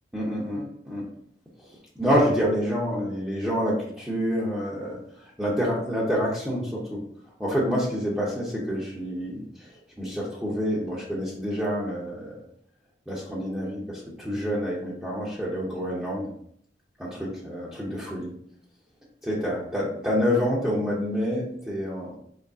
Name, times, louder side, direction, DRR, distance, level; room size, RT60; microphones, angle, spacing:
voice 1, 0.1-1.0 2.0-7.0 7.4-12.4 13.1-16.3 17.0-18.3 19.2-22.2, equal, 5° right, -8 dB, 0.8 m, -28 dB
4.0 x 3.2 x 3.5 m, 0.67 s
head